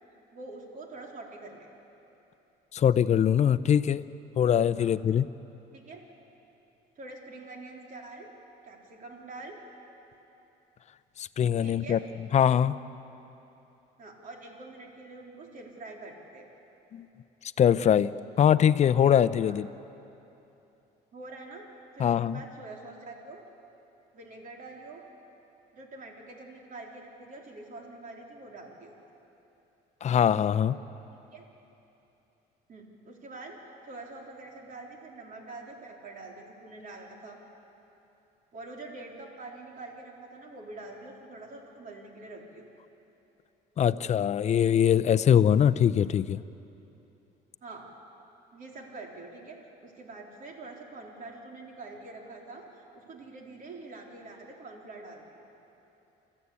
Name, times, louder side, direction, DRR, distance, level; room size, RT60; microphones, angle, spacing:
voice 1, 0.3-1.7 4.8-4.9 5.7-6.0 7.0-8.3 8.6-9.6 11.6-12.0 14.0-16.5 19.4-19.6 21.1-21.7 22.0-23.4 24.1-25.0 25.7-28.9 31.1-31.4 32.7-37.4 38.5-42.7 47.6-47.9 48.5-55.5, right 2 dB, 50° right, 0 dB, 3.7 m, -45 dB
voice 2, 2.7-4.0 4.4-5.3 11.2-12.0 12.3-12.8 16.9-17.1 17.6-18.1 18.4-19.7 22.0-22.4 30.0-30.8 43.8-46.4, left 9 dB, 45° left, 15 dB, 0.6 m, -22 dB
28.5 x 14.5 x 8.5 m, 2.9 s
cardioid pair, 110°, 17 cm